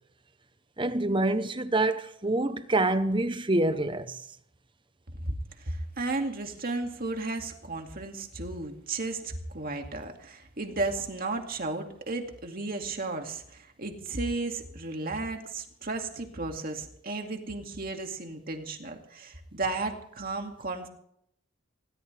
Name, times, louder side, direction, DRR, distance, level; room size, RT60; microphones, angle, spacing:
voice 1, 0.8-4.2, right 2 dB, 25° right, 0.9 m, -26 dB
voice 2, 5.2-20.9, right 2 dB, 45° right, 2.3 m, -34 dB
20.5 x 18.5 x 3.4 m
head